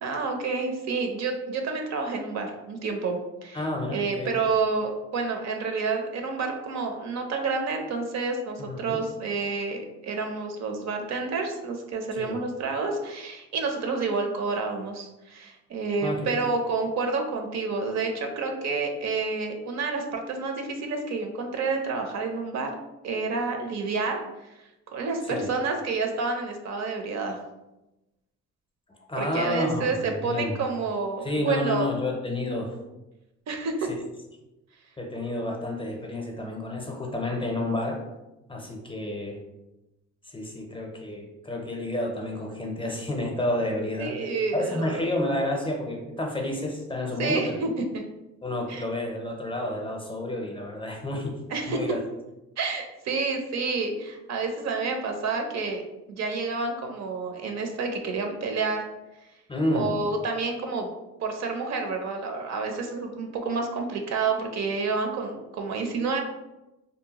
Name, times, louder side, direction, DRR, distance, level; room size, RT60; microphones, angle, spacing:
voice 1, 0.0-3.6 3.9-22.7 23.0-24.2 24.6-27.4 29.1-31.9 33.5-33.9 44.0-45.1 47.2-47.7 48.7-48.8 51.5-51.8 52.6-55.8 56.1-58.8 59.7-60.9 61.2-66.2, right 4 dB, 60° right, 4 dB, 0.5 m, -29 dB
voice 2, 3.5-4.4 8.6-9.0 12.2-12.4 16.0-16.4 25.3-25.5 29.1-30.5 31.2-32.7 35.0-38.0 38.5-39.4 40.3-44.1 44.5-47.6 48.4-51.4 51.7-52.0 59.5-59.9, left 1 dB, 15° left, 0 dB, 0.5 m, -30 dB
2.7 x 2.1 x 2.8 m, 0.98 s
cardioid pair, 90°, 30 cm